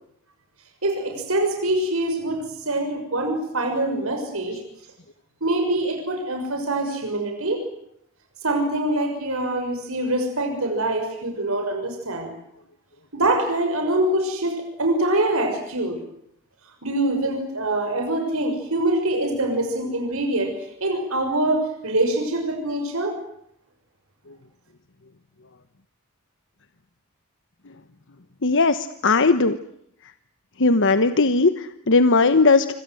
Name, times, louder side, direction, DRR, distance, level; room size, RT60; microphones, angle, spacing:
voice 1, 0.8-4.6 5.4-7.6 8.4-12.3 13.1-16.0 16.8-20.6 20.8-23.1, right 1 dB, 70° right, 4 dB, 6.4 m, -24 dB
voice 2, 28.4-29.6 30.6-32.7, left 3 dB, 60° left, 10 dB, 1.2 m, -18 dB
27.0 x 25.5 x 7.9 m, 0.73 s
head